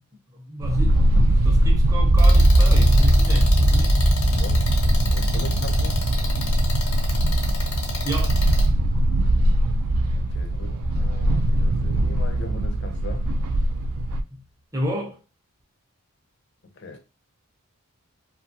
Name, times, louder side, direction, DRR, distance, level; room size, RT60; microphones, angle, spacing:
voice 1, 0.3-4.0 8.0-8.5 14.3-14.4 14.7-15.2, equal, 15° right, 0.5 m, -31 dB
sound 1, 0.6-14.2, right 1 dB, 70° right, 0.3 m, -22 dB
sound 2, 2.0-12.0 12.3-13.0, right 1 dB, 55° right, 0.7 m, -22 dB
sound 3, 2.2-8.7, left 3 dB, 90° left, 0.9 m, -32 dB
voice 2, 4.4-6.1 10.2-13.3 16.6-17.0, left 3 dB, 50° left, 0.5 m, -40 dB
2.7 x 2.2 x 2.6 m
head